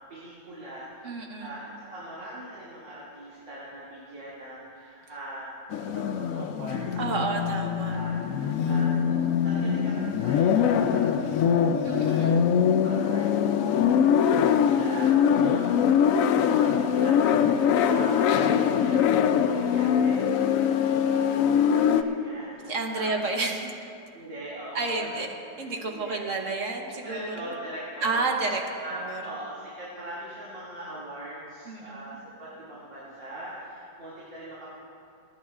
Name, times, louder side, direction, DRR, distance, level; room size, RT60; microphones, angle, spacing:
voice 1, 0.0-7.4 7.9-8.9 9.4-12.2 12.5-23.1 24.1-25.3 25.8-26.3 27.0-34.7, right 1 dB, 90° right, -10 dB, 3.2 m, -42 dB
voice 2, 1.0-1.6 7.0-8.0 11.8-12.5 15.6-16.2 22.7-23.8 24.7-25.3 25.6-27.5 28.0-28.6 28.9-29.2 31.7-32.2, right 3 dB, 50° right, 2 dB, 1.3 m, -31 dB
sound 1, 5.7-22.0, left 8 dB, 75° left, 0.7 m, -23 dB
28.0 x 9.6 x 2.5 m, 2.5 s
omnidirectional pair, 1.9 m